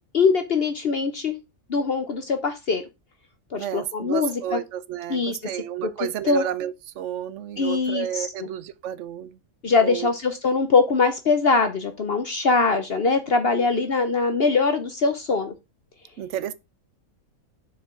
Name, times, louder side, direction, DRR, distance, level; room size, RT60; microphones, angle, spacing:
voice 1, 0.1-1.4 1.7-2.8 3.5-4.6 5.1-5.4 6.0-6.4 7.6-8.3 9.6-15.5, left 4 dB, 50° left, 0.9 m, -22 dB
voice 2, 3.5-9.4 9.8-10.1 16.2-16.5, right 10 dB, 65° right, 1.0 m, -31 dB
7.0 x 4.6 x 4.9 m
omnidirectional pair, 1.5 m